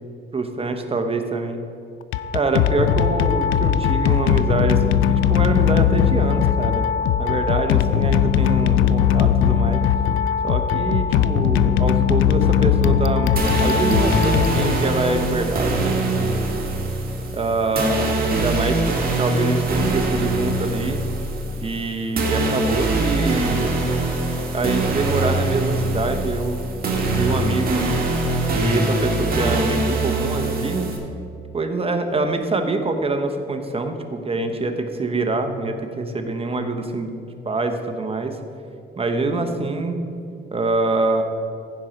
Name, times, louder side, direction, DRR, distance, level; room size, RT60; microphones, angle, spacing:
voice 1, 0.3-1.6 2.3-6.9 7.2-9.8 10.4-13.3 13.6-16.5 17.3-21.0 21.6-23.8 24.5-26.7 27.2-28.0 28.5-30.9 31.5-38.4 39.0-40.0 40.5-41.2, right 3 dB, 30° right, 6 dB, 1.1 m, -25 dB
sound 1, 2.0-15.2, left 9 dB, 90° left, 0.4 m, -19 dB
sound 2, 13.4-31.0, right 2 dB, 50° right, 2.0 m, -23 dB
15.0 x 5.4 x 4.5 m, 2.6 s
cardioid pair, 90°, 20 cm